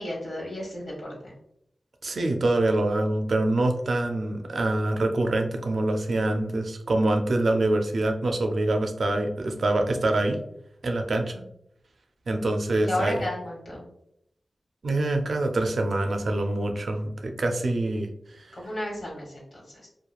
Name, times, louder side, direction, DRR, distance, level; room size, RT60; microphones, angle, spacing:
voice 1, 0.0-1.3 12.8-13.9 18.5-19.9, left 1 dB, 75° left, -3 dB, 1.2 m, -33 dB
voice 2, 2.0-10.4 10.8-11.4 12.3-13.2 14.8-18.6, right 2 dB, 80° right, 4 dB, 0.4 m, -25 dB
2.9 x 2.2 x 2.3 m, 0.74 s
cardioid pair, 55°, 0 cm